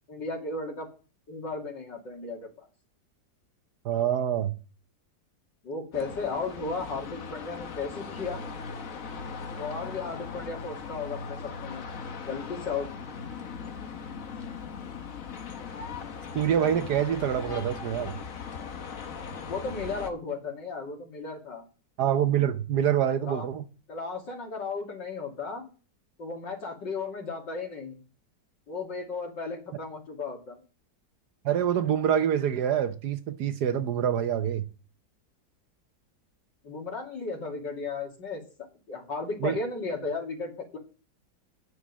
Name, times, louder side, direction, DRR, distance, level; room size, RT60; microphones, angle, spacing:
voice 1, 0.1-0.9 1.3-2.7 5.6-8.4 9.6-11.8 12.3-12.9 19.4-21.6 23.2-23.5 23.9-25.6 26.2-28.0 28.7-30.6 36.6-38.4 38.9-40.8, left 4 dB, 80° left, 3.4 m, -35 dB
voice 2, 3.8-4.5 16.3-18.1 22.0-23.6 31.4-34.6 39.4-39.6, right 9 dB, 70° right, 1.3 m, -26 dB
sound 1, 5.9-20.1, left 5 dB, 50° left, 1.4 m, -39 dB
10.0 x 6.6 x 7.3 m
omnidirectional pair, 1.9 m